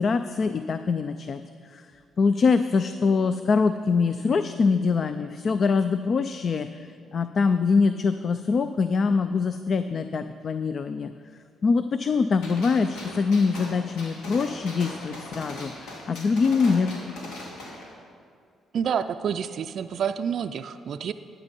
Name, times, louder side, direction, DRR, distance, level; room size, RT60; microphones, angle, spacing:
voice 1, 0.0-1.9 2.2-11.1 11.6-16.9, left 4 dB, 50° left, 10 dB, 0.4 m, -24 dB
Gunshot gunfire, 12.4-17.9, left 1 dB, 90° left, 2.2 m, -40 dB
voice 2, 18.7-21.1, right 7 dB, 60° right, 8 dB, 0.3 m, -28 dB
12.0 x 9.0 x 5.3 m, 2.3 s
cardioid pair, 90°, 0 cm